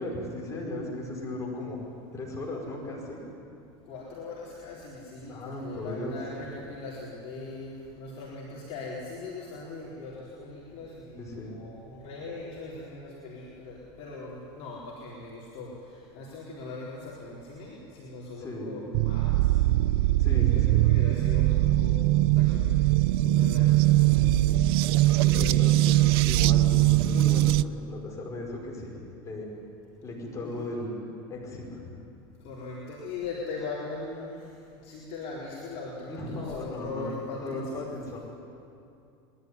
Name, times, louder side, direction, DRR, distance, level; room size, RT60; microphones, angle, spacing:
voice 1, 0.0-1.8 2.1-3.2 5.3-6.2 11.2-11.6 18.4-18.8 20.2-20.9 25.2-28.9 29.2-29.4 30.0-30.9 31.3-31.9 36.1-37.1 37.4-38.3, left 1 dB, 25° left, -3 dB, 5.5 m, -36 dB
voice 2, 3.9-19.6 20.3-22.1 22.4-22.8 23.2-24.3 25.3-25.6 30.4-30.6 32.4-34.4 34.8-37.9, left 3 dB, 55° left, -6 dB, 4.3 m, -40 dB
sound 1, 18.9-27.6, right 16 dB, 70° right, 0.5 m, -21 dB
21.5 x 12.0 x 9.8 m, 2.6 s
supercardioid pair, 105°, 13 cm